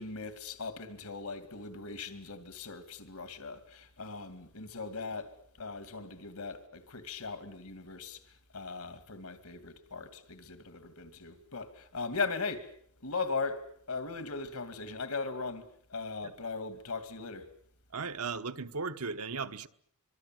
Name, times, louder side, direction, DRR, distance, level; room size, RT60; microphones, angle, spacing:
voice 1, 0.0-12.7 13.0-17.5, left 4 dB, 85° left, 2.4 m, -39 dB
voice 2, 17.9-19.7, right 4 dB, 90° right, 1.1 m, -36 dB
25.0 x 24.0 x 7.7 m
head